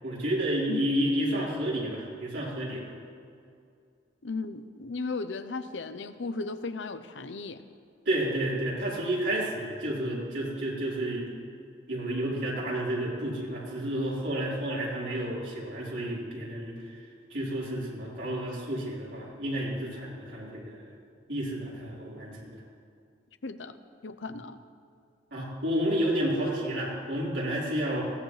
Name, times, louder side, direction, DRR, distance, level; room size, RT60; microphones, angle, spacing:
voice 1, 0.0-2.9 8.0-11.2 11.9-16.7 17.3-20.8 21.3-22.5 25.3-28.0, right 1 dB, 70° right, -6 dB, 4.6 m, -30 dB
voice 2, 4.2-7.6 23.4-23.7 24.0-24.6, left 3 dB, 85° left, 10 dB, 0.7 m, -35 dB
21.0 x 16.5 x 3.3 m, 2.4 s
head